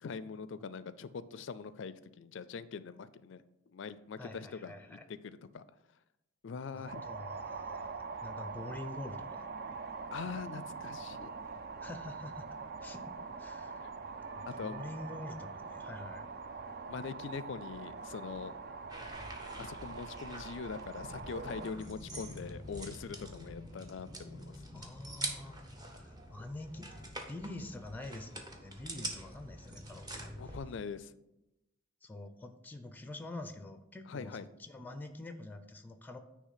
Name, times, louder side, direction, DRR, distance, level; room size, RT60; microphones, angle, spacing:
voice 1, 0.0-3.4 3.7-5.6 6.4-7.0 10.1-11.6 13.8-13.9 14.5-14.8 16.9-18.6 19.6-24.6 30.4-31.1 34.1-34.5, left 5 dB, 60° left, 15 dB, 0.4 m, -43 dB
voice 2, 4.2-5.1 6.7-9.5 11.8-13.9 14.4-16.3 24.7-27.0 27.3-30.6 32.0-36.2, left 2 dB, 10° left, 8 dB, 0.5 m, -46 dB
sound 1, 6.9-21.7, right 4 dB, 50° right, 0.4 m, -44 dB
sound 2, 18.9-30.6, right 1 dB, 20° right, 0.9 m, -45 dB
9.7 x 3.2 x 5.6 m, 0.91 s
head